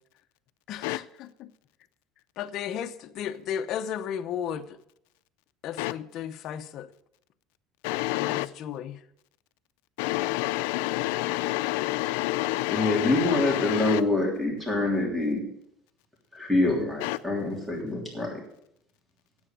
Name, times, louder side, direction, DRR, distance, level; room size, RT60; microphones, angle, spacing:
voice 1, 0.7-1.5 2.4-4.7 5.6-6.9 8.1-9.0, left 9 dB, 55° left, 0.8 m, -34 dB
voice 2, 7.8-8.5 10.0-14.0 17.0-17.2, left 19 dB, 90° left, 0.4 m, -28 dB
voice 3, 12.7-15.4 16.3-18.3, left 2 dB, ahead, 3.1 m, -26 dB
9.7 x 7.9 x 7.4 m
cardioid pair, 130°, 0 cm